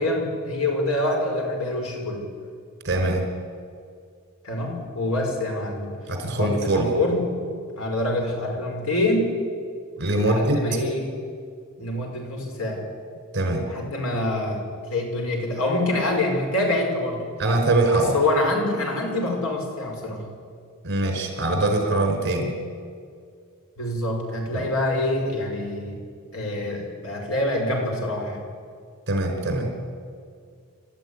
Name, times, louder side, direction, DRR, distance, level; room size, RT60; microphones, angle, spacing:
voice 1, 0.0-2.2 4.4-6.0 6.4-7.3 7.8-9.3 10.2-11.1 11.8-12.8 13.7-17.2 17.9-20.3 23.8-26.0 26.3-28.4, left 1 dB, 85° left, 1 dB, 5.6 m, -26 dB
voice 2, 2.8-3.3 6.1-6.9 10.0-10.6 13.3-13.7 17.4-18.1 20.8-22.5 24.6-24.7 29.1-29.7, right 2 dB, 55° right, 4 dB, 4.9 m, -22 dB
27.0 x 13.5 x 9.8 m, 2.2 s
head